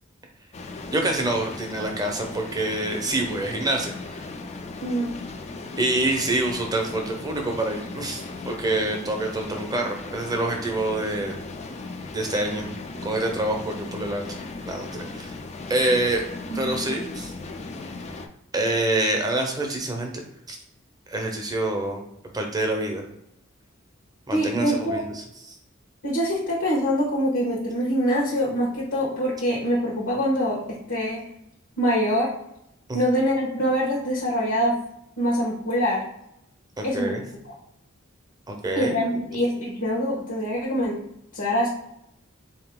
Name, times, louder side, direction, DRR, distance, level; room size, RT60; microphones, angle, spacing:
sound 1, 0.5-18.3, left 3 dB, 35° left, 0.5 m, -37 dB
voice 1, 0.9-4.2 5.8-11.4 12.1-12.7 13.0-14.2 14.7-15.3 15.7-16.2 16.6-17.3 18.5-20.1 20.5-20.6 21.1-22.0 22.3-23.0 24.3-25.5 32.9-33.0 36.8-37.2 38.5-39.2, right 2 dB, 20° right, 2 dB, 0.7 m, -26 dB
voice 2, 4.8-5.1 16.5-16.9 24.3-25.0 26.0-31.2 31.8-32.3 32.9-34.7 35.2-36.0 36.8-37.1 37.4-37.5 38.7-41.0 41.3-41.7, equal, 75° left, -5 dB, 1.3 m, -24 dB
3.8 x 2.8 x 3.7 m, 0.78 s
head